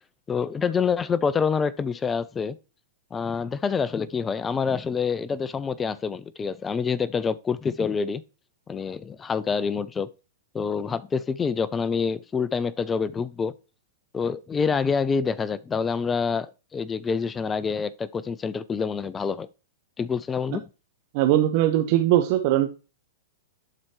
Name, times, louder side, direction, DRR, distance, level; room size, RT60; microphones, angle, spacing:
voice 1, 0.3-2.6 3.1-8.2 8.7-10.1 10.5-13.5 14.1-19.5 20.0-20.6, left 5 dB, 15° left, 0.4 m, -27 dB
voice 2, 21.1-22.7, right 13 dB, 50° right, 0.8 m, -20 dB
11.5 x 4.4 x 3.2 m
hypercardioid pair, 115°, 0 cm